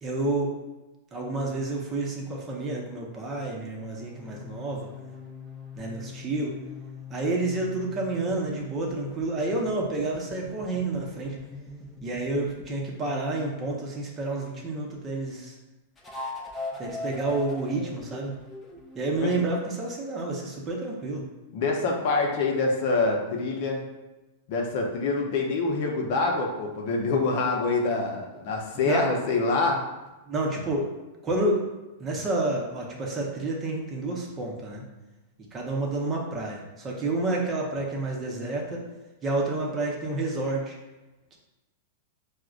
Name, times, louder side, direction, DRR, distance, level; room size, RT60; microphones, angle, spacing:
voice 1, 0.0-0.5 1.1-4.9 5.7-6.6 7.1-11.4 12.0-15.5 16.8-18.4 18.9-21.2 28.8-29.0 30.3-30.9 31.2-31.6 32.0-34.8 35.5-38.8 39.2-40.7 41.3-41.4, right 2 dB, 25° right, -1 dB, 0.7 m, -29 dB
sound 1, 3.6-13.8 16.0-19.6, left 3 dB, 15° left, 0.6 m, -41 dB
voice 2, 21.5-23.8 24.5-29.8, left 3 dB, 55° left, 0 dB, 0.6 m, -26 dB
4.7 x 2.1 x 2.4 m, 1.1 s
hypercardioid pair, 120°, 0 cm